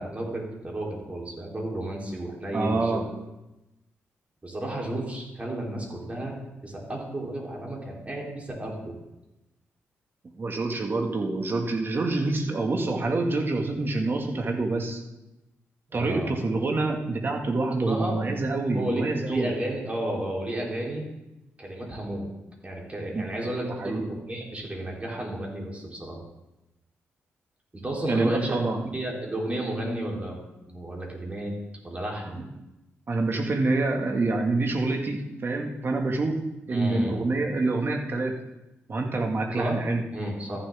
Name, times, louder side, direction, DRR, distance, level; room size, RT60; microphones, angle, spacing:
voice 1, 0.0-3.1 4.4-6.4 6.6-8.9 15.9-16.3 17.8-18.2 18.7-21.1 21.6-22.3 22.6-26.2 27.8-28.6 28.9-30.4 30.7-31.5 31.8-32.4 36.7-37.2 39.5-39.8 40.1-40.6, right 1 dB, 25° right, -2 dB, 3.6 m, -32 dB
voice 2, 2.5-3.0 10.4-15.0 15.9-19.5 23.1-23.2 23.8-24.0 28.1-28.8 32.3-32.4 33.1-36.3 36.7-38.3 38.9-40.0, right 3 dB, 45° right, 2 dB, 1.9 m, -26 dB
14.0 x 7.2 x 3.7 m, 0.95 s
cardioid pair, 60°, 5 cm